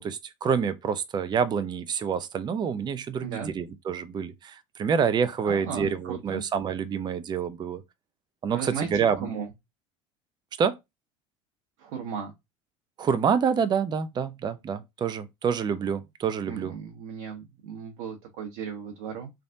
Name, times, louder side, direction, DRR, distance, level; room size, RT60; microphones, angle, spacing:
voice 1, 0.0-7.8 8.4-9.3 10.6-10.8 13.0-16.7, right 6 dB, 25° right, 0.5 m, -27 dB
voice 2, 3.2-3.5 5.4-6.4 8.5-9.5 11.8-12.3 16.5-19.3, right 6 dB, 60° right, 0.9 m, -36 dB
3.4 x 2.5 x 2.6 m
hypercardioid pair, 75°, 17 cm